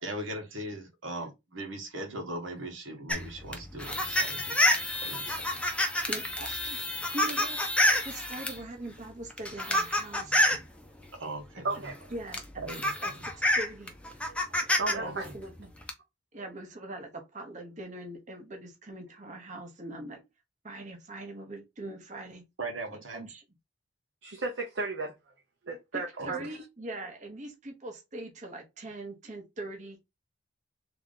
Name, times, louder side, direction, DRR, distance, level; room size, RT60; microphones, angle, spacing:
voice 1, 0.0-4.6 5.0-5.4 11.2-11.9 12.6-13.1 15.0-15.4 22.6-23.3 26.2-26.3, right 1 dB, 85° right, 1.4 m, -39 dB
sound 1, 3.1-8.6 9.3-10.7 11.9-12.0 12.3-14.9 15.2-15.9, left 1 dB, 5° left, 0.6 m, -28 dB
voice 2, 6.1-6.8 7.1-7.6 8.0-10.5 12.1-12.4 13.0-13.9 14.9-15.7 16.3-20.2 20.6-22.5 23.1-23.4 25.9-30.0, right 2 dB, 40° right, 0.9 m, -41 dB
voice 3, 14.8-15.3 24.2-25.1 25.6-26.6, right 3 dB, 70° right, 0.9 m, -34 dB
3.6 x 2.9 x 3.8 m
head